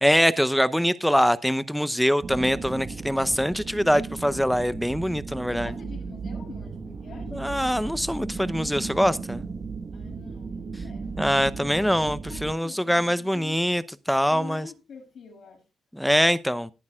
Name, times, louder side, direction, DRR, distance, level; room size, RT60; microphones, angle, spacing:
voice 1, 0.0-5.7 7.3-9.4 11.2-13.8 14.1-14.6 16.0-16.7, equal, ahead, 0.7 m, -23 dB
sound 1, 2.2-12.6, right 4 dB, 50° right, 1.3 m, -35 dB
voice 2, 5.5-7.6 9.9-11.7 12.1-13.6 14.3-15.7, left 6 dB, 70° left, 7.2 m, -45 dB
18.5 x 9.4 x 2.4 m
cardioid pair, 70°, 0 cm